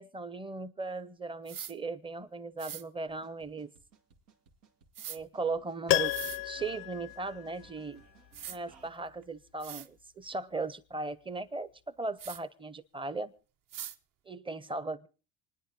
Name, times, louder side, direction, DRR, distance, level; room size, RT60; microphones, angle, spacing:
voice 1, 0.0-3.7 5.1-8.0 8.5-11.7 12.0-13.3 14.3-15.1, right 3 dB, 10° right, 0.7 m, -37 dB
sound 1, 1.5-1.7 2.6-2.8 4.9-5.2 6.0-6.4 7.9-8.0 8.3-8.6 9.2-9.3 9.6-9.9 12.2-12.4 13.7-14.0, right 9 dB, 40° right, 0.8 m, -42 dB
sound 2, 3.1-8.9, right 6 dB, 90° right, 1.9 m, -61 dB
Piano, 5.9-8.0 8.3-8.4, left 19 dB, 65° left, 0.6 m, -32 dB
27.5 x 9.8 x 3.8 m
supercardioid pair, 90°, 50 cm